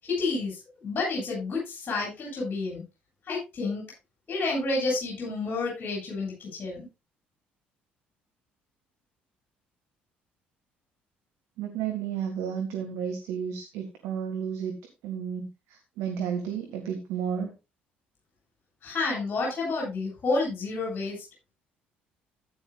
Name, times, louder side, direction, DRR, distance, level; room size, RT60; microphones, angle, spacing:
voice 1, 0.0-2.8 3.3-3.8 4.3-6.9 18.8-21.2, left 3 dB, 35° left, -3 dB, 7.8 m, -30 dB
voice 2, 11.6-14.7 15.0-15.5 16.0-17.5, right 8 dB, 60° right, 4 dB, 1.8 m, -32 dB
14.5 x 9.9 x 2.4 m, 0.26 s
figure-of-eight pair, 50°, 5 cm